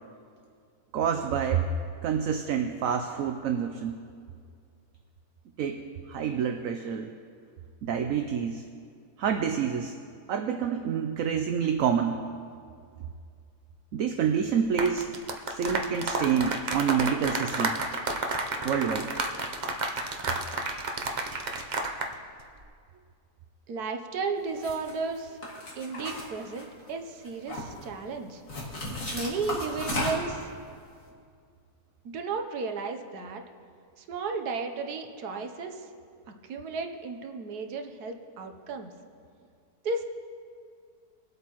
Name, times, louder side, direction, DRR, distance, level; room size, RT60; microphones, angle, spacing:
voice 1, 0.9-1.7 2.0-4.0 5.6-5.8 6.1-7.1 7.8-8.6 9.2-9.9 10.3-12.2 13.9-15.2 15.5-17.8 18.6-19.1, right 7 dB, 65° right, 6 dB, 1.0 m, -27 dB
sound 1, 14.7-22.1 22.4-22.6, right 2 dB, 40° right, 0.6 m, -31 dB
voice 2, 23.7-25.4 25.8-28.4 29.1-30.5 32.0-33.4 34.0-35.9 36.4-38.9 39.8-40.0, right 4 dB, 85° right, 5 dB, 1.4 m, -34 dB
sound 2, 24.6-24.9 25.4-26.9 27.2-27.9 28.5-30.4, left 1 dB, 60° left, 2.4 m, -34 dB
22.0 x 8.3 x 3.0 m, 2.2 s
omnidirectional pair, 1.6 m